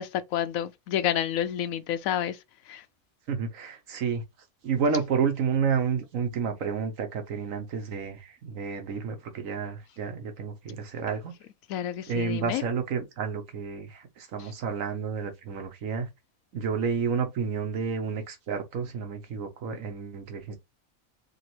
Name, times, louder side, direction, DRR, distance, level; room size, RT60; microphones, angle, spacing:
voice 1, 0.0-2.4 2.7-2.8 11.7-12.6 14.4-14.5, left 10 dB, 85° left, 1.0 m, -29 dB
voice 2, 3.3-4.2 4.6-11.3 12.1-16.1 16.5-20.6, right 6 dB, 75° right, 1.3 m, -30 dB
5.1 x 2.5 x 3.0 m
omnidirectional pair, 1.4 m